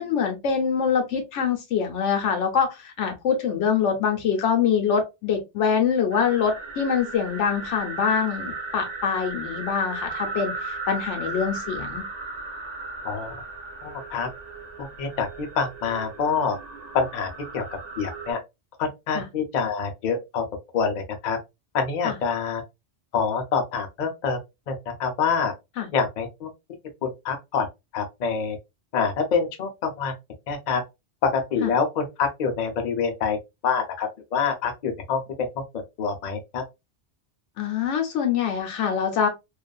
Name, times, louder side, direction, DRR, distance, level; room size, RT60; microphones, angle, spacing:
voice 1, 0.0-12.0 19.1-19.2 22.0-22.1 25.8-25.9 31.6-31.7 37.6-39.3, left 7 dB, 85° left, 1.0 m, -24 dB
sound 1, 6.1-18.3, right 3 dB, 45° right, 0.7 m, -36 dB
voice 2, 13.8-14.3 15.0-16.6 16.9-17.3 17.5-17.6 18.0-18.4 18.8-20.4 20.7-20.9 21.2-21.4 21.7-22.6 23.1-24.4 24.7-24.8 25.0-25.5 25.9-26.5 27.0-27.7 27.9-28.6 28.9-30.1 30.5-30.8 31.2-33.4 33.6-35.2 36.0-36.6, left 5 dB, 50° left, 0.6 m, -26 dB
2.5 x 2.4 x 2.2 m
omnidirectional pair, 1.2 m